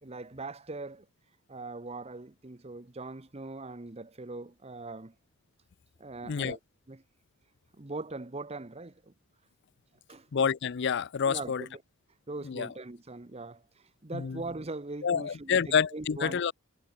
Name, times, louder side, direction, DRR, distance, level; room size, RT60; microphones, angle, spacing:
voice 1, 0.0-1.1 1.5-5.1 6.0-6.6 6.9-7.0 7.8-9.1 10.1-10.3 11.3-11.8 12.3-16.4, right 3 dB, 25° right, 0.9 m, -41 dB
voice 2, 6.2-6.6 10.3-11.7 12.4-12.7 14.1-14.4 15.0-16.5, left 6 dB, 50° left, 0.4 m, -28 dB
head